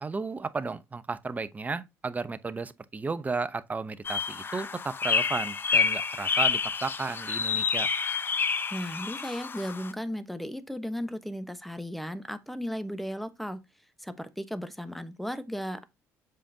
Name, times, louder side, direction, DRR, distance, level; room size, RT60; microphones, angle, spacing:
voice 1, 0.0-7.9, right 4 dB, 25° right, 0.8 m, -34 dB
sound 1, 4.0-9.9, left 5 dB, 35° left, 0.7 m, -28 dB
voice 2, 8.7-13.6 14.0-15.8, equal, ahead, 1.1 m, -35 dB
7.6 x 5.2 x 2.8 m
supercardioid pair, 85°, 7 cm